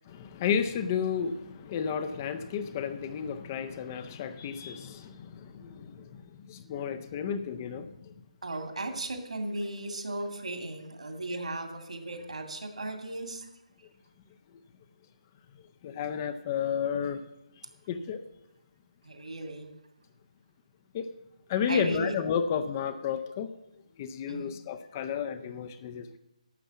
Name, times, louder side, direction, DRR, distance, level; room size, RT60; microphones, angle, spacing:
voice 1, 0.1-8.1 15.8-17.2 17.9-18.2 20.9-21.1 21.5-23.5 24.0-26.2, left 7 dB, 25° left, 10 dB, 0.6 m, -32 dB
voice 2, 8.4-13.5 19.0-19.7 21.7-22.2 24.3-24.6, right 2 dB, 65° right, 6 dB, 2.4 m, -36 dB
12.0 x 7.1 x 7.2 m, 0.88 s
figure-of-eight pair, 145°, 4 cm